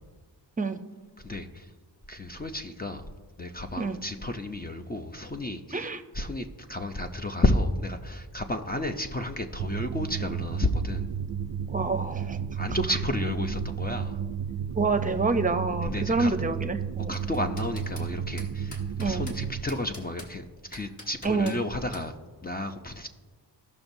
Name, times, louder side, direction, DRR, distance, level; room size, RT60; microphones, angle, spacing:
voice 1, 1.2-1.7 2.1-3.1 3.4-5.9 6.1-11.0 12.5-14.2 15.8-16.4 17.1-20.4 20.7-22.1 22.4-23.1, left 1 dB, 20° left, 5 dB, 0.5 m, -31 dB
voice 2, 5.7-6.0 11.7-12.4 14.7-17.1 19.0-19.3 21.2-21.6, right 3 dB, 20° right, 8 dB, 0.7 m, -27 dB
sound 1, 9.6-19.6, right 7 dB, 60° right, 0.6 m, -33 dB
sound 2, 17.1-18.1 18.4-19.4 19.7-20.3 20.7-21.6 21.9-22.1, left 1 dB, 40° left, 1.9 m, -45 dB
16.0 x 5.9 x 2.7 m, 1.4 s
cardioid pair, 75°, 44 cm